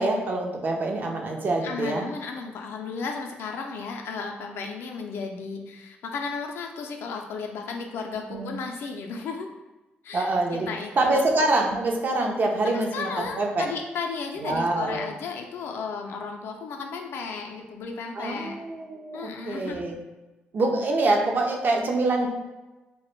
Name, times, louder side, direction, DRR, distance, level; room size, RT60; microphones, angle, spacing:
voice 1, 0.0-2.1 8.3-8.5 10.1-10.7 11.0-13.7 14.4-15.0 18.2-20.0 20.5-22.3, right 2 dB, 50° right, 1 dB, 0.5 m, -25 dB
voice 2, 1.6-9.5 10.0-11.3 12.6-18.6 19.1-19.9, left 5 dB, 75° left, 3 dB, 0.3 m, -34 dB
2.1 x 2.0 x 3.0 m, 1.1 s
supercardioid pair, 65°, 4 cm